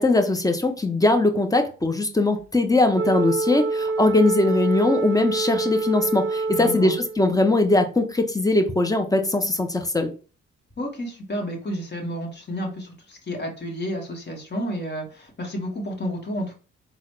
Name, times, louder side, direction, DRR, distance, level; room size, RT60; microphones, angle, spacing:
voice 1, 0.0-10.1, left 2 dB, 10° left, 6 dB, 0.9 m, -21 dB
Wind instrument woodwind instrument, 2.9-7.3, right 3 dB, 40° right, 0.8 m, -26 dB
voice 2, 6.5-7.0 10.8-16.5, equal, 35° left, 0 dB, 1.8 m, -31 dB
3.8 x 2.5 x 3.1 m, 0.35 s
supercardioid pair, 50°, 31 cm